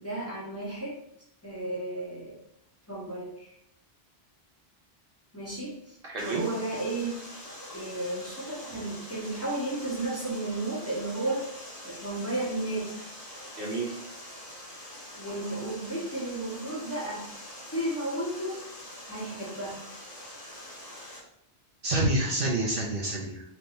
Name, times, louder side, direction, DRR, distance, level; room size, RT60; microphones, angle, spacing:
voice 1, 0.0-0.9 1.4-2.3 2.9-3.5 5.3-7.2 7.7-13.1 15.1-17.3 17.7-18.6 19.1-19.8, right 2 dB, 15° left, -8 dB, 1.6 m, -33 dB
voice 2, 6.0-6.4 13.6-13.9 21.8-23.4, right 2 dB, 60° right, -3 dB, 0.9 m, -28 dB
Water, 6.2-21.2, left 1 dB, 35° left, 1.6 m, -44 dB
3.4 x 3.1 x 4.0 m, 0.76 s
omnidirectional pair, 1.1 m